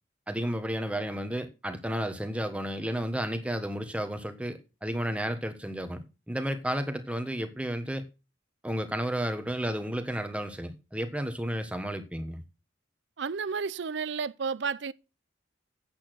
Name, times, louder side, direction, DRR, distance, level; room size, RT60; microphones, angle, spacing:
voice 1, 0.3-8.0 8.6-12.4, right 1 dB, 5° right, 1.3 m, -32 dB
voice 2, 13.2-14.9, right 5 dB, 65° right, 0.5 m, -32 dB
8.8 x 8.3 x 6.3 m
head